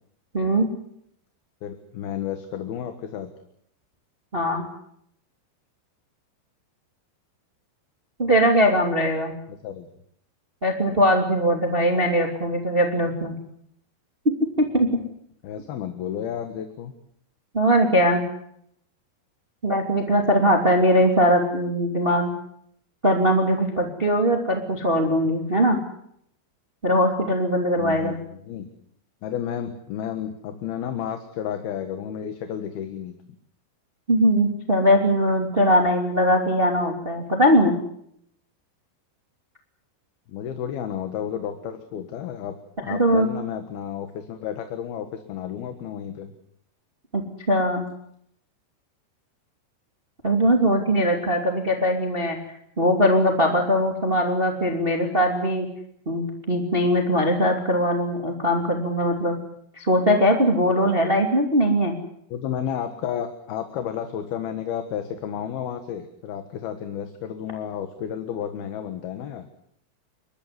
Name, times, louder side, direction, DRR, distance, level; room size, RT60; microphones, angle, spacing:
voice 1, 0.3-0.7 4.3-4.6 8.2-9.3 10.6-13.3 14.6-14.9 17.5-18.2 19.6-22.3 23.0-25.8 26.8-28.2 34.1-37.8 42.9-43.3 47.1-47.8 50.2-52.4 52.8-55.7 56.1-59.4 59.8-62.0, equal, 15° right, 3 dB, 2.2 m, -20 dB
voice 2, 1.6-3.3 9.6-9.9 15.4-16.9 27.8-28.2 28.4-28.7 29.2-33.1 40.3-46.3 50.5-50.7 62.3-69.5, left 9 dB, 65° left, 7 dB, 3.2 m, -32 dB
30.0 x 13.5 x 9.8 m, 0.72 s
omnidirectional pair, 5.1 m